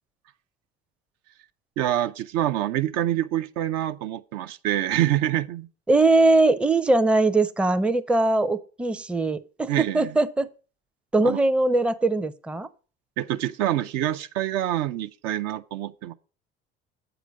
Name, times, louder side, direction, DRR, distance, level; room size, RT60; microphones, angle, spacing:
voice 1, 1.8-5.7 9.7-10.1 11.2-11.4 13.2-16.1, right 12 dB, 55° right, 0.5 m, -26 dB
voice 2, 5.9-10.5 11.1-12.7, right 2 dB, 5° right, 0.5 m, -21 dB
7.7 x 5.0 x 6.2 m
hypercardioid pair, 65°, 31 cm